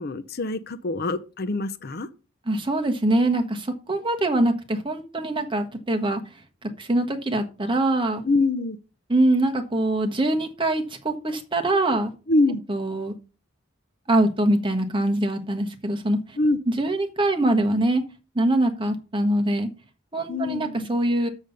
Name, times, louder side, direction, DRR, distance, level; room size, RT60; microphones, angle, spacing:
voice 1, 0.0-2.1 8.2-8.8 12.3-12.6 16.4-16.6 20.3-20.9, left 2 dB, 45° left, 0.6 m, -24 dB
voice 2, 2.5-6.2 6.8-8.2 9.1-12.1 12.7-13.1 14.1-16.4 16.8-18.0 18.3-19.7 20.1-21.3, right 1 dB, 25° right, 1.3 m, -23 dB
7.1 x 6.4 x 6.6 m
head